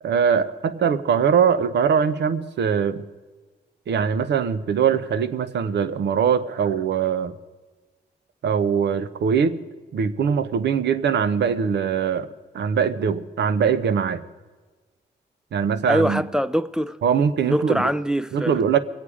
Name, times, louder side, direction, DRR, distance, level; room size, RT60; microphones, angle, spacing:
voice 1, 0.0-3.0 3.9-7.3 8.4-9.6 9.9-12.3 12.5-14.2 15.5-16.2 17.0-17.9 18.3-18.8, right 7 dB, 75° right, 0.8 m, -22 dB
voice 2, 15.9-17.0 17.4-18.6, equal, 5° right, 0.4 m, -23 dB
21.5 x 8.5 x 4.9 m
cardioid pair, 70°, 18 cm